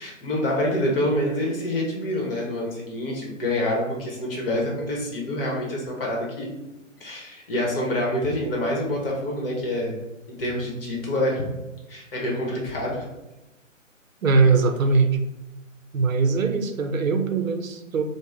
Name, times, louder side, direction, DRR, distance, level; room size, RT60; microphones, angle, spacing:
voice 1, 0.0-6.5 7.0-10.0 10.4-11.4 11.9-13.1, left 1 dB, 45° left, -2 dB, 0.9 m, -26 dB
voice 2, 14.2-15.2 15.9-18.0, right 4 dB, 90° right, 6 dB, 0.5 m, -21 dB
3.1 x 2.0 x 3.6 m, 1.0 s
figure-of-eight pair, 135°, 39 cm